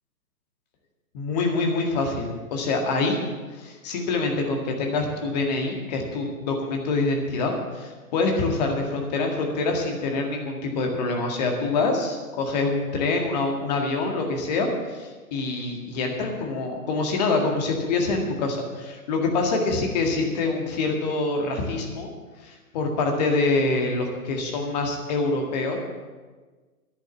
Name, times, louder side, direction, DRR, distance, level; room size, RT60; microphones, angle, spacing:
voice 1, 1.1-3.2 3.5-22.1 22.4-25.8, left 3 dB, 25° left, 2 dB, 1.9 m, -25 dB
10.5 x 8.5 x 8.3 m, 1.3 s
figure-of-eight pair, 130°, 45 cm